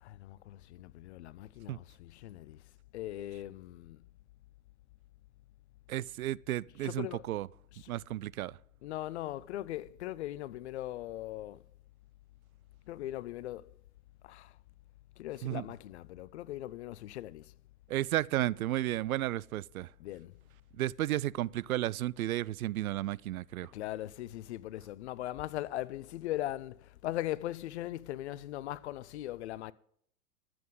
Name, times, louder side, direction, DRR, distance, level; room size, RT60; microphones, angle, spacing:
voice 1, 0.0-2.6 2.9-4.1 6.8-7.3 7.7-7.9 8.8-11.6 12.9-13.7 14.2-14.6 15.2-17.5 20.0-20.4 23.7-29.7, left 14 dB, 50° left, 0.6 m, -40 dB
voice 2, 5.9-7.5 7.9-8.6 15.4-15.6 17.9-19.9 20.7-23.7, right 14 dB, 70° right, 0.5 m, -33 dB
22.5 x 7.8 x 3.9 m
hypercardioid pair, 110°, 45 cm